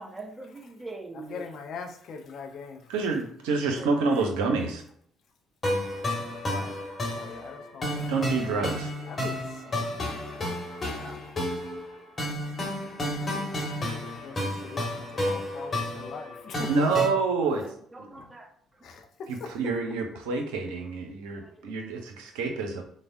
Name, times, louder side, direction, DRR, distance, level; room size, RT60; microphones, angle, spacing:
voice 1, 0.0-1.4 3.8-4.3 17.5-18.8 21.2-21.7, right 3 dB, 20° right, 2 dB, 0.7 m, -43 dB
voice 2, 1.1-2.9 3.7-4.0 6.5-6.8 7.1-8.2 9.1-9.8 10.8-11.2 14.0-17.0 18.1-18.3 18.8-19.5, left 5 dB, 60° left, 4 dB, 0.5 m, -42 dB
voice 3, 2.9-4.8 8.1-8.9 16.7-17.6 18.0-18.1 19.5-22.8, right 4 dB, 75° right, 3 dB, 0.5 m, -27 dB
sound 1, 5.6-17.1, left 1 dB, 35° left, 1.1 m, -31 dB
3.3 x 2.1 x 2.5 m, 0.62 s
hypercardioid pair, 50°, 0 cm